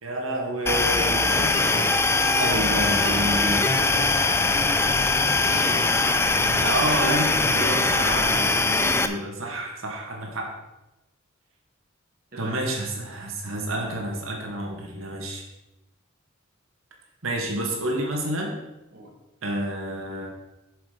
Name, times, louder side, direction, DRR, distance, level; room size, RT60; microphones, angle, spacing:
voice 1, 0.0-1.9 2.1-3.6 6.3-10.5 12.4-15.4 17.2-18.6 19.4-20.3, right 1 dB, 80° right, 0 dB, 2.1 m, -29 dB
sound 1, 0.7-9.1, left 3 dB, 10° left, 0.5 m, -22 dB
voice 2, 1.4-1.9 2.6-6.0 12.3-12.6 18.9-19.1, right 1 dB, 50° right, -1 dB, 1.5 m, -37 dB
8.1 x 6.9 x 5.1 m, 0.98 s
head